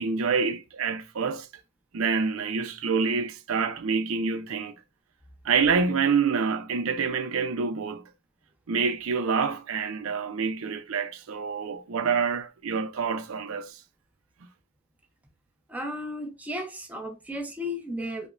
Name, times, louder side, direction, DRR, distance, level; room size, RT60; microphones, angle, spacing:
voice 1, 0.0-1.5 1.9-4.7 5.4-8.0 8.7-13.8, right 5 dB, 85° right, 0.5 m, -27 dB
voice 2, 15.7-18.3, left 1 dB, 5° right, 0.6 m, -34 dB
5.1 x 2.1 x 2.4 m
head